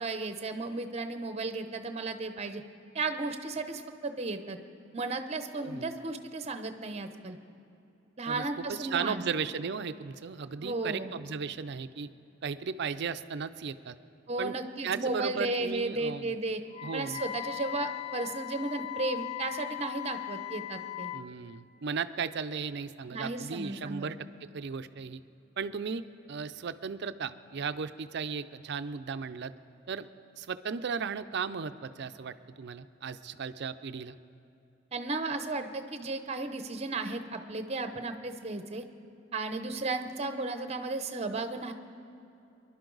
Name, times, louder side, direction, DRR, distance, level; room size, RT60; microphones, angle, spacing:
voice 1, 0.0-2.6 2.9-4.6 4.9-7.4 8.2-9.2 10.6-11.1 14.3-16.6 16.9-21.1 23.1-24.1 34.9-38.8 39.3-41.7, right 3 dB, 30° right, 8 dB, 0.8 m, -34 dB
voice 2, 5.6-5.9 8.3-8.4 8.7-12.1 12.4-14.0 14.4-14.5 14.8-16.4 16.8-17.2 21.1-25.2 25.6-26.0 26.3-29.5 29.9-30.1 30.4-34.2, right 6 dB, 60° right, 12 dB, 0.5 m, -36 dB
Wind instrument woodwind instrument, 16.7-21.3, left 14 dB, 30° left, 0.4 m, -39 dB
24.0 x 11.5 x 3.9 m, 2.8 s
head